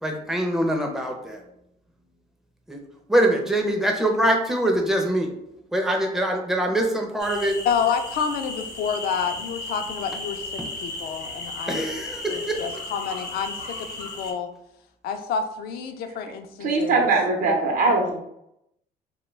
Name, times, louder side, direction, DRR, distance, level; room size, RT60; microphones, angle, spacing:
voice 1, 0.0-1.4 2.7-2.8 3.1-5.3 5.7-7.6 10.6-10.7 11.7-12.7, right 1 dB, ahead, 2 dB, 0.5 m, -23 dB
sound 1, 7.2-14.3, left 2 dB, 80° left, 0.7 m, -35 dB
voice 2, 7.7-10.4 10.8-11.8 12.3-14.5 15.0-17.0, left 6 dB, 65° left, 6 dB, 0.4 m, -28 dB
voice 3, 16.6-18.2, right 3 dB, 55° right, 2 dB, 0.7 m, -21 dB
2.2 x 2.2 x 3.2 m, 0.79 s
cardioid pair, 110°, 17 cm